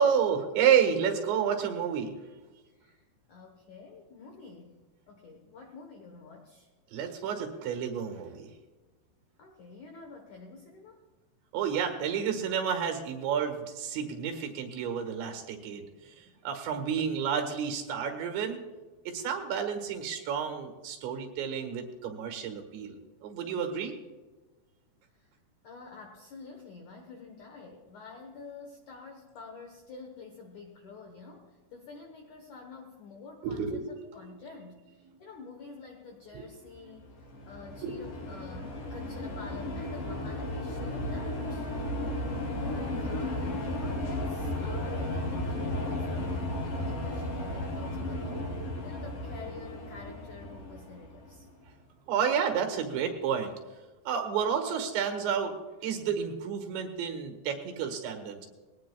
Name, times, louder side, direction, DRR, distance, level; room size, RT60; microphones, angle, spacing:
voice 1, 0.0-2.2 6.9-8.5 11.5-18.6 19.1-23.9 33.4-33.9 36.3-36.5 36.9-37.0 37.8-38.0 52.1-53.5 54.1-55.5 55.8-58.5, right 7 dB, 75° right, 5 dB, 3.8 m, -30 dB
voice 2, 2.7-3.0 3.3-4.8 5.1-6.7 9.4-11.0 25.2-25.3 25.6-37.0 37.5-41.7 42.6-48.4 48.8-51.5, left 4 dB, 75° left, 2 dB, 1.8 m, -48 dB
sound 1, 37.0-51.5, left 1 dB, 50° left, 4.8 m, -34 dB
21.0 x 18.0 x 2.3 m, 1.3 s
omnidirectional pair, 5.3 m